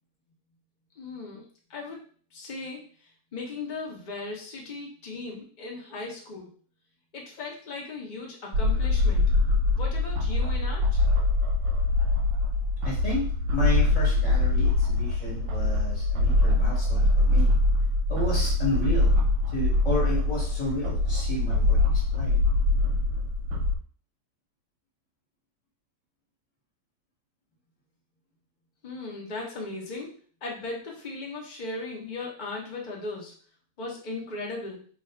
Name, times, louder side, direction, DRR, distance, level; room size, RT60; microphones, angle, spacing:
voice 1, 1.0-1.4 1.7-2.0 2.3-2.8 3.3-6.6 7.1-9.3 9.8-11.0 28.8-33.3 33.8-34.9, left 3 dB, 60° left, -1 dB, 0.5 m, -37 dB
sound 1, 8.5-23.8, left 2 dB, 70° right, 1.2 m, -23 dB
voice 2, 12.8-17.6 18.1-19.1 19.5-22.4, equal, 20° left, -5 dB, 1.1 m, -32 dB
3.0 x 2.4 x 4.3 m, 0.43 s
omnidirectional pair, 2.2 m